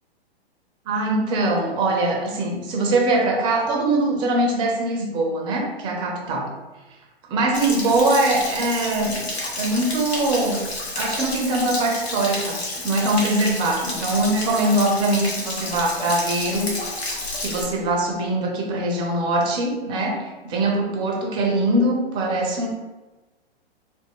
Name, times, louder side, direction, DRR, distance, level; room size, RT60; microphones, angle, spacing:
voice 1, 0.9-6.5 7.3-9.3 9.6-10.7 10.9-17.1 17.4-22.7, right 2 dB, 15° right, 0 dB, 0.4 m, -22 dB
Stream / Splash splatter / Trickle dribble, 7.5-17.6, left 2 dB, 80° left, 1.0 m, -30 dB
3.3 x 2.0 x 3.5 m, 1.1 s
figure-of-eight pair, 110°, 32 cm